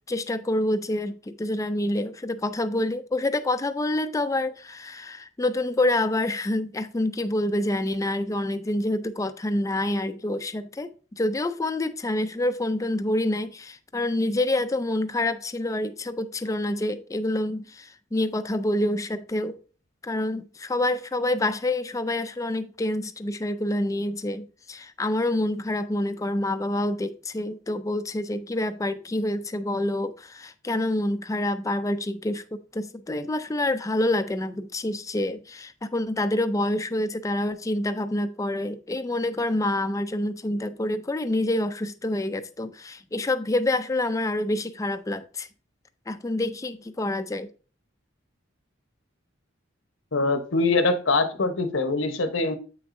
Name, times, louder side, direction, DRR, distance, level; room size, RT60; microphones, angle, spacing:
voice 1, 0.1-10.9 11.2-19.6 20.0-45.5 46.1-47.5, left 1 dB, 15° left, 0.4 m, -27 dB
voice 2, 50.1-52.6, left 3 dB, 75° left, 0.9 m, -23 dB
7.9 x 6.0 x 2.6 m
head